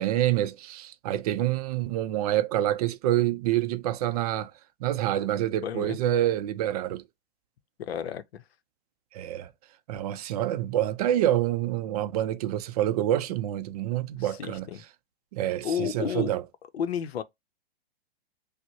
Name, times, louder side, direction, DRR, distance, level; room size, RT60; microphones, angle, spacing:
voice 1, 0.0-4.5 4.8-7.0 9.1-9.5 9.9-14.7 15.3-16.4, right 12 dB, 40° right, 0.4 m, -27 dB
voice 2, 5.6-6.0 7.8-8.4 14.2-14.8 15.6-16.3 16.7-17.2, left 8 dB, 80° left, 0.6 m, -31 dB
5.9 x 2.1 x 2.7 m
hypercardioid pair, 130°, 31 cm